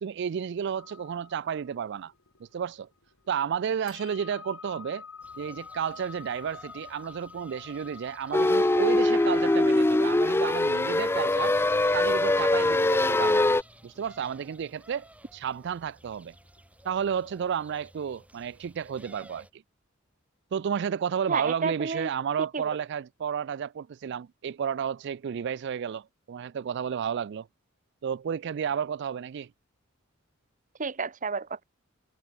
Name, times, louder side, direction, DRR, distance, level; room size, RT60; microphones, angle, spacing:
voice 1, 0.0-2.1 2.4-2.9 3.3-5.0 5.4-11.6 11.9-13.5 13.8-16.4 16.8-19.6 20.5-27.5 28.0-29.5, right 7 dB, 55° right, 0.3 m, -32 dB
sound 1, 0.8-17.1, left 6 dB, 80° left, 2.8 m, -50 dB
sound 2, 5.2-19.5, right 1 dB, 5° right, 5.6 m, -55 dB
sound 3, 8.3-13.6, left 2 dB, 10° left, 0.4 m, -23 dB
voice 2, 21.3-22.1 22.5-22.6 30.8-31.6, right 5 dB, 40° right, 0.9 m, -30 dB
head